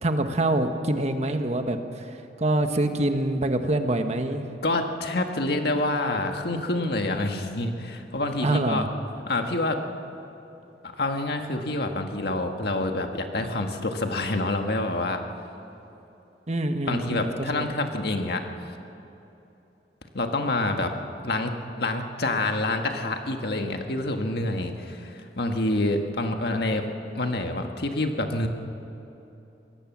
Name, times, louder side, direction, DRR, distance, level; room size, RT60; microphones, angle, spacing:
voice 1, 0.0-1.8 2.4-4.5 8.4-8.9 16.5-17.7, right 1 dB, 40° right, 7 dB, 1.3 m, -25 dB
voice 2, 4.6-8.8 9.3-9.8 10.8-15.2 16.9-18.4 20.1-20.9 21.2-26.8 27.1-28.5, left 2 dB, 65° left, 4 dB, 1.7 m, -27 dB
23.5 x 18.0 x 7.4 m, 3.0 s
head